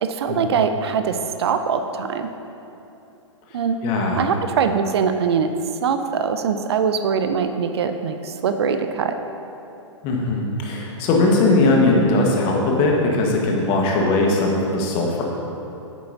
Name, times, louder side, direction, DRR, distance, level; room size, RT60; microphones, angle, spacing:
voice 1, 0.0-2.3 3.5-3.8 4.2-5.5 5.8-9.2, right 6 dB, 55° right, 8 dB, 0.5 m, -22 dB
voice 2, 3.8-4.3 10.0-15.2, left 2 dB, 35° left, -1 dB, 1.5 m, -19 dB
10.0 x 9.1 x 2.8 m, 2.9 s
figure-of-eight pair, 115°, 16 cm